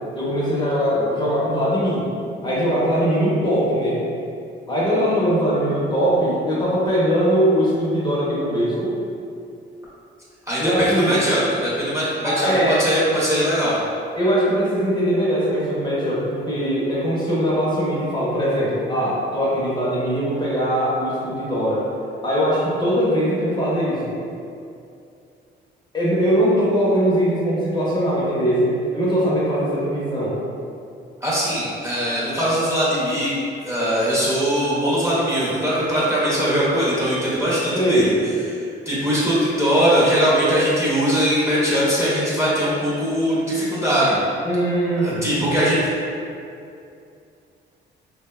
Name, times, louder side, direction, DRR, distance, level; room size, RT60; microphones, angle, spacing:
voice 1, 0.1-2.1 2.4-4.0 4.7-8.9 10.6-11.2 12.2-12.8 14.2-21.8 22.2-24.1 25.9-30.4 37.7-38.1 44.4-45.3, equal, 20° left, -8 dB, 0.7 m, -21 dB
voice 2, 10.5-13.8 31.2-33.3 33.6-38.1 38.5-44.2 45.0-45.8, equal, 15° right, -9 dB, 0.7 m, -21 dB
2.6 x 2.1 x 2.3 m, 2.5 s
cardioid pair, 90°, 20 cm